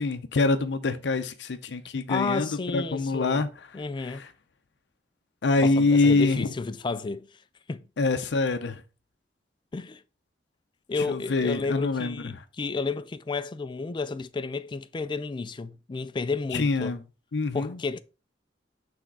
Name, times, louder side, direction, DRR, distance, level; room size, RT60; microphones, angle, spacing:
voice 1, 0.0-3.5 4.0-4.3 5.4-6.5 8.0-8.8 11.0-12.2 16.5-17.0 17.3-17.8, left 3 dB, 75° left, 0.6 m, -25 dB
voice 2, 2.1-3.5 3.7-4.2 5.6-7.3 7.7-7.9 9.7-10.0 10.9-17.0 17.5-18.0, left 4 dB, 25° left, 0.3 m, -31 dB
6.1 x 3.5 x 4.7 m
head